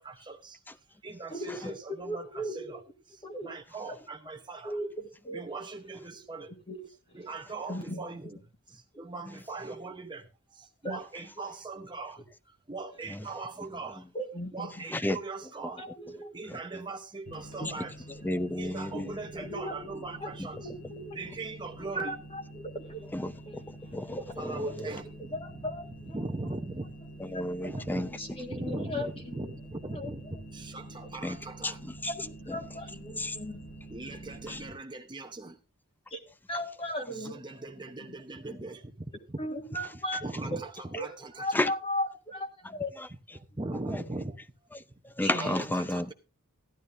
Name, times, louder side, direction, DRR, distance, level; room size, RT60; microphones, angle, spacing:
voice 1, 0.0-2.8 3.1-4.8 5.3-6.5 7.1-8.4 8.7-14.0 14.5-15.8 16.3-17.9 18.5-20.7 21.1-22.1 24.4-25.3 26.1-26.9 27.3-27.4 27.7-28.1 28.5-29.0 29.3-30.2 30.5-31.8 33.9-35.6 37.1-39.4 40.2-41.7 43.3-44.4 45.3-46.1, right 3 dB, 20° right, 0.9 m, -40 dB
voice 2, 1.3-2.7 3.2-3.5 3.9-4.0 4.6-5.4 6.1-6.2 6.5-6.8 7.1-7.3 7.7-8.3 8.9-9.0 10.8-11.0 14.1-14.8 15.8-16.3 17.6-18.3 18.9-19.1 19.4-21.4 21.8-23.6 24.1-24.3 24.7-24.9 25.3-26.2 27.3-27.4 28.0-29.6 29.9-30.1 32.1-33.6 36.1-37.4 37.8-38.1 38.5-38.7 39.4-40.6 40.9-42.9 43.9-44.1 45.2-45.6, equal, 25° left, 1.7 m, -38 dB
sound 1, 17.3-34.7, right 1 dB, 85° left, 5.6 m, -47 dB
voice 3, 18.2-19.1 20.4-20.5 23.1-24.9 27.2-28.1 29.0-29.1 31.2-31.4 31.6-32.1 33.2-33.4 34.5-34.6 41.5-41.7 43.0-43.1 43.9-44.0 45.2-46.1, left 1 dB, 10° left, 0.4 m, -32 dB
15.0 x 12.0 x 2.6 m
head